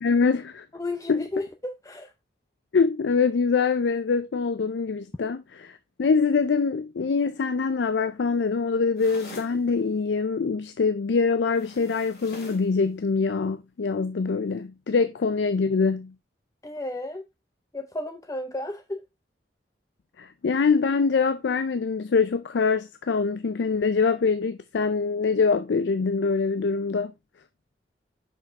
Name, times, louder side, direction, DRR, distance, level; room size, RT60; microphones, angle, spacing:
voice 1, 0.0-0.7 1.1-1.3 2.7-16.1 20.2-27.1, left 5 dB, 90° left, 0.4 m, -24 dB
voice 2, 0.7-2.1 16.6-17.2 17.7-19.0, left 2 dB, 20° left, 0.5 m, -33 dB
sound 1, 9.0-9.6 11.5-12.7, left 1 dB, 60° left, 2.2 m, -44 dB
6.1 x 5.3 x 3.5 m
head